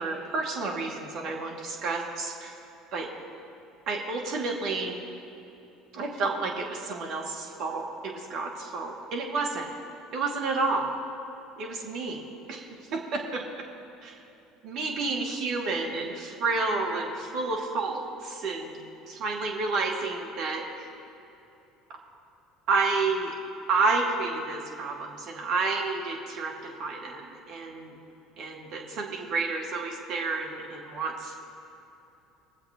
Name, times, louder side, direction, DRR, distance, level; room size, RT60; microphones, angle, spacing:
voice 1, 0.0-2.5 2.9-3.1 3.9-4.9 5.9-9.7 10.1-10.9 11.6-12.7 13.1-13.6 14.0-14.2 14.6-18.8 19.1-20.6 22.7-23.3 23.7-26.5 26.8-27.9 28.4-31.3, right 3 dB, 55° right, -1 dB, 2.4 m, -30 dB
23.0 x 7.7 x 3.8 m, 2.9 s
hypercardioid pair, 65°, 0 cm